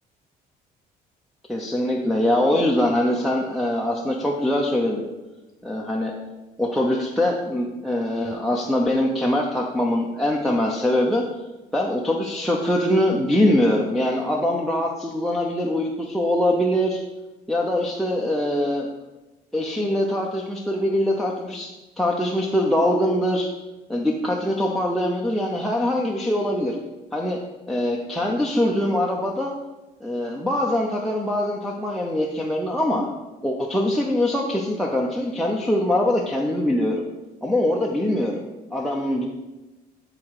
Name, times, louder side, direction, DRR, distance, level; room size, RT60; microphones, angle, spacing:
voice 1, 1.5-5.1 5.6-6.1 6.6-11.2 11.7-17.0 17.5-18.9 19.5-21.7 22.0-23.5 23.9-26.8 27.1-27.4 27.7-29.5 30.0-33.1 33.4-37.1 37.4-38.4 38.7-39.3, left 1 dB, ahead, -1 dB, 0.8 m, -23 dB
9.2 x 3.8 x 4.8 m, 1.1 s
cardioid pair, 110°, 17 cm